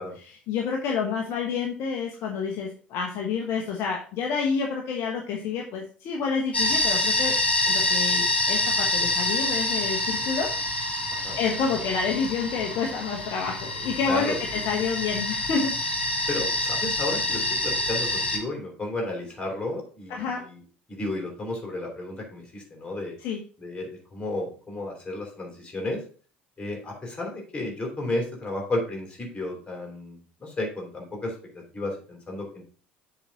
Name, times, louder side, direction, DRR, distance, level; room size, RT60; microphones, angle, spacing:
voice 1, 0.1-7.3 7.6-10.9 11.3-15.7 20.1-20.4 23.2-23.4, left 5 dB, 50° left, 0 dB, 1.2 m, -29 dB
sound 1, 6.5-18.4, left 2 dB, 85° left, 1.1 m, -26 dB
voice 2, 11.1-11.4 14.1-14.4 16.3-20.6 20.9-23.1 23.6-26.0 26.6-32.6, left 2 dB, 20° left, 0 dB, 3.7 m, -33 dB
7.1 x 4.2 x 5.9 m, 0.41 s
figure-of-eight pair, 65°, 6 cm